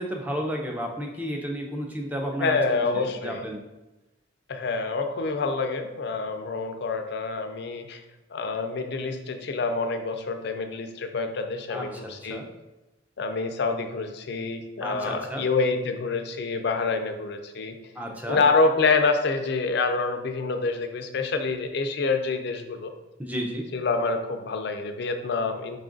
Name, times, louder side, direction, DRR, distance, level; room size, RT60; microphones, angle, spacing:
voice 1, 0.0-3.6 11.7-12.5 14.8-15.4 18.0-18.4 23.2-23.7, equal, 10° right, 1 dB, 0.5 m, -32 dB
voice 2, 2.4-3.4 4.5-8.0 8.3-12.4 13.2-17.8 18.3-22.9 23.7-25.8, left 4 dB, 60° left, 6 dB, 0.4 m, -27 dB
5.2 x 2.4 x 3.8 m, 1.0 s
head